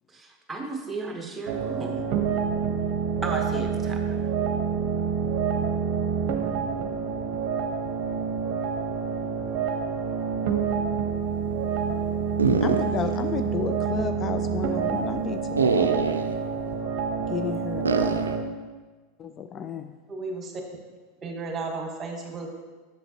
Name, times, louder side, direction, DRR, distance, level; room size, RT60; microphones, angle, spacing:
voice 1, 0.1-2.1 3.2-4.0, right 3 dB, 15° right, 3 dB, 1.1 m, -34 dB
synth-and-flutes, 1.5-18.4, right 6 dB, 50° right, 0.8 m, -27 dB
sound 1, 12.4-13.2 13.5-13.6 15.6-16.4 17.8-18.4, right 5 dB, 80° right, 0.4 m, -24 dB
voice 2, 12.6-16.0 17.3-18.1 19.2-19.9, left 7 dB, 30° left, 8 dB, 0.3 m, -32 dB
voice 3, 20.1-20.5 21.2-22.5, right 3 dB, 30° right, 2 dB, 1.3 m, -34 dB
7.8 x 6.7 x 2.9 m, 1.3 s
figure-of-eight pair, 85°, 0 cm